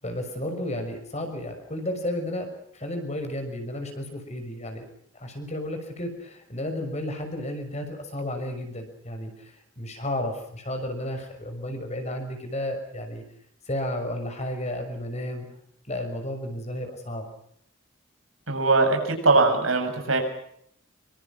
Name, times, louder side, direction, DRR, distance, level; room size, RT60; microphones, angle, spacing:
voice 1, 0.0-2.5 2.7-4.9 5.1-13.2 13.7-15.5 15.9-17.3, left 1 dB, 35° left, 6 dB, 6.3 m, -32 dB
voice 2, 18.5-20.2, right 3 dB, 80° right, 4 dB, 7.5 m, -21 dB
27.5 x 24.5 x 6.1 m, 0.70 s
head